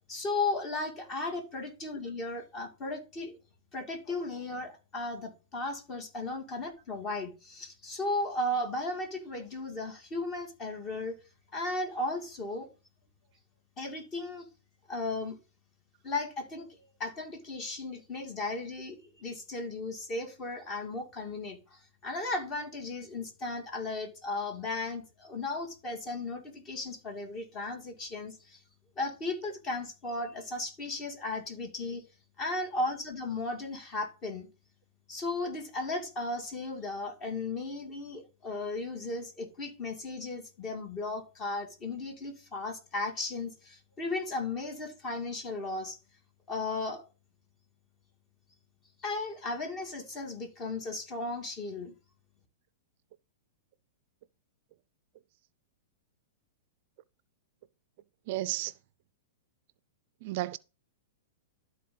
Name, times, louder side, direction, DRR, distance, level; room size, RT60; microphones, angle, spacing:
voice 1, 0.1-3.4 3.7-11.2 11.5-12.7 13.8-14.5 14.9-15.4 16.0-16.7 17.0-28.6 29.0-32.0 32.4-34.5 35.1-46.0 46.5-47.0 49.0-51.9, left 2 dB, 30° left, 2.3 m, -35 dB
voice 2, 58.3-58.7 60.2-60.6, right 16 dB, 55° right, 0.4 m, -32 dB
12.5 x 4.1 x 3.8 m
hypercardioid pair, 130°, 0 cm